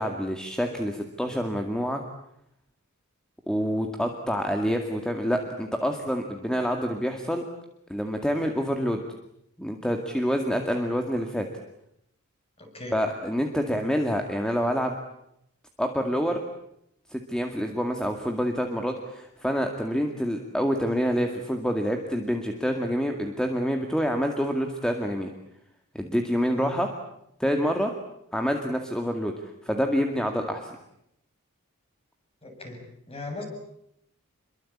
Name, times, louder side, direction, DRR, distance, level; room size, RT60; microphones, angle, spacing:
voice 1, 0.0-2.0 3.5-7.4 7.9-9.0 9.6-11.5 12.9-15.0 15.8-16.4 17.1-25.3 25.9-26.9 27.4-27.9 28.3-30.7, equal, 5° left, 4 dB, 2.1 m, -27 dB
voice 2, 12.6-13.0 26.5-26.8 32.4-33.4, left 2 dB, 25° left, 3 dB, 7.8 m, -39 dB
27.5 x 23.0 x 8.7 m, 0.77 s
head